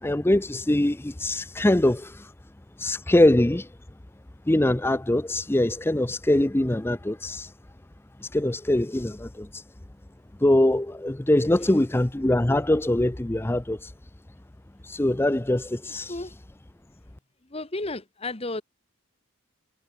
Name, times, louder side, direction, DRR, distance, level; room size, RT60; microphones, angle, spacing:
voice 1, 0.0-2.3 2.8-3.7 4.5-7.5 8.2-9.6 10.4-13.9 14.8-16.1, left 1 dB, 10° left, 0.5 m, -23 dB
voice 2, 17.5-18.6, left 2 dB, 25° left, 1.3 m, -33 dB
head